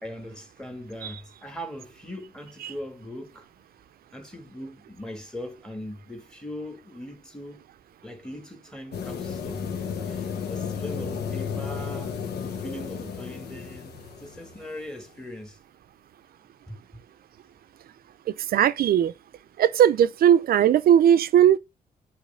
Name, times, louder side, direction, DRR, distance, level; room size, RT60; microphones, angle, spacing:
voice 1, 0.0-3.5 4.1-7.7 8.0-9.7 10.1-12.2 12.4-13.9 14.2-15.6 16.7-16.8, equal, 5° left, 1.8 m, -40 dB
sound 1, 8.9-14.9, left 6 dB, 85° left, 1.3 m, -33 dB
voice 2, 18.5-19.1 19.6-21.6, right 10 dB, 70° right, 0.5 m, -18 dB
8.3 x 3.2 x 5.5 m
cardioid pair, 120°, 16 cm